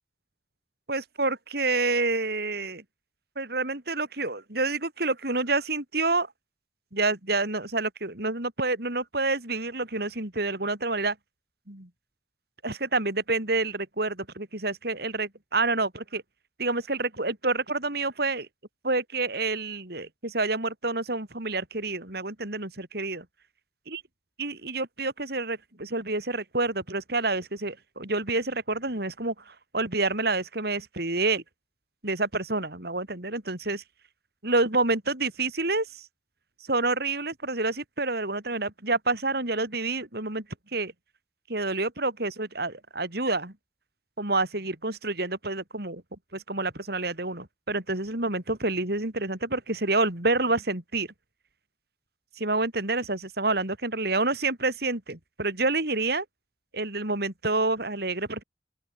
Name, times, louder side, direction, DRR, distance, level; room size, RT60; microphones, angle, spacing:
voice 1, 0.9-2.8 3.4-6.3 6.9-11.2 11.7-11.9 12.6-16.2 16.6-18.5 18.8-23.2 23.9-24.0 24.4-31.4 32.0-33.8 34.4-36.0 36.7-40.4 40.7-40.9 41.5-43.5 44.2-46.0 46.3-51.1 52.4-56.2 56.7-58.4, right 3 dB, 60° right, 4.2 m, -28 dB
open air
head